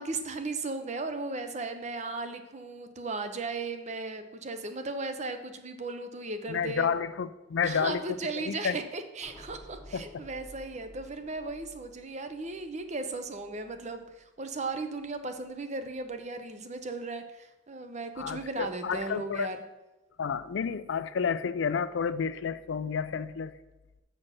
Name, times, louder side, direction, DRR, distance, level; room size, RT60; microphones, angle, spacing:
voice 1, 0.0-6.9 7.6-19.6, right 3 dB, 35° right, 8 dB, 0.7 m, -36 dB
voice 2, 6.5-8.8 9.9-10.1 18.2-19.5 20.2-23.5, left 6 dB, 70° left, 15 dB, 0.4 m, -30 dB
sound 1, 9.2-15.5 15.9-16.2, equal, 10° right, 1.3 m, -53 dB
7.3 x 4.4 x 6.4 m, 1.1 s
head